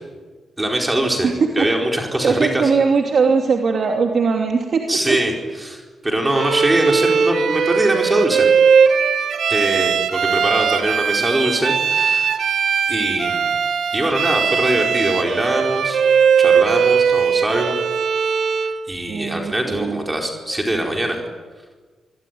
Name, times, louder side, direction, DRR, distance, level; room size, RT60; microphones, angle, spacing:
voice 1, 0.6-1.3 1.6-2.7 4.9-5.3 5.6-8.5 9.5-12.4 12.9-13.5 13.9-16.0 16.4-17.8 18.9-21.2, right 1 dB, 15° right, 1 dB, 4.6 m, -22 dB
voice 2, 2.2-4.8 5.1-5.2 19.1-20.0, right 5 dB, 55° right, 2 dB, 2.8 m, -19 dB
Bowed string instrument, 6.3-18.8, right 6 dB, 75° right, 2.4 m, -19 dB
26.0 x 23.0 x 9.5 m, 1.4 s
cardioid pair, 110°, 0 cm